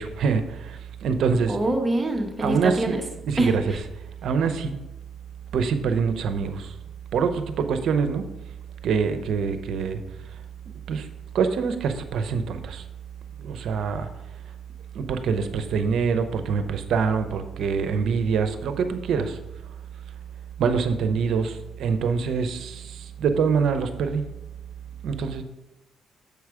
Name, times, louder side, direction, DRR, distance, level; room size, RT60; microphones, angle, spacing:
voice 1, 0.0-1.6 2.4-3.0 3.2-3.8 4.2-4.7 5.5-6.7 7.1-8.2 8.8-10.0 10.9-11.1 11.3-12.8 13.4-14.1 14.9-19.4 20.6-24.2 25.0-25.4, right 5 dB, 75° right, 9 dB, 0.7 m, -25 dB
voice 2, 1.5-3.0 3.4-3.5, right 1 dB, 20° right, 2 dB, 1.2 m, -24 dB
7.0 x 4.8 x 4.8 m, 0.97 s
cardioid pair, 90°, 0 cm